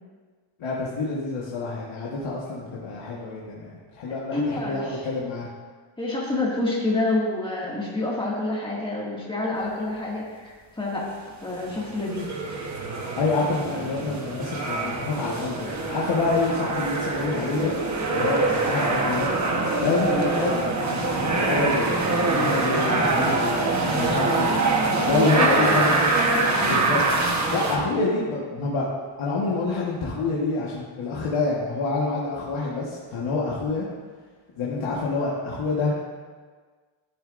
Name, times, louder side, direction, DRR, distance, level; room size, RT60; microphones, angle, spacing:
voice 1, 0.6-5.5 13.2-17.7 18.1-19.3 19.8-23.5 23.8-24.5 25.0-26.0 26.6-27.0 27.5-28.9 29.2-33.9 34.6-35.9, left 3 dB, 85° left, -6 dB, 1.5 m, -27 dB
voice 2, 4.3-5.0 6.0-11.1 11.4-12.3 20.1-20.2 25.1-25.8 26.2-26.8, left 2 dB, 10° left, -5 dB, 2.0 m, -28 dB
sound 1, 11.7-27.8, right 3 dB, 35° right, 1.2 m, -24 dB
13.0 x 7.1 x 2.6 m, 1.5 s
wide cardioid pair, 130°, 48 cm